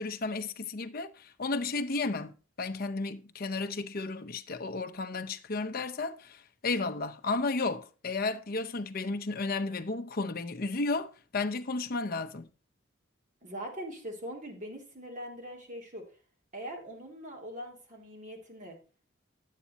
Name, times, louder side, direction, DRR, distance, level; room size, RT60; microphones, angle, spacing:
voice 1, 0.0-12.5, left 3 dB, 45° left, 0.6 m, -33 dB
voice 2, 13.4-16.1 16.5-18.8, equal, 40° right, 2.5 m, -42 dB
9.7 x 8.3 x 4.0 m
head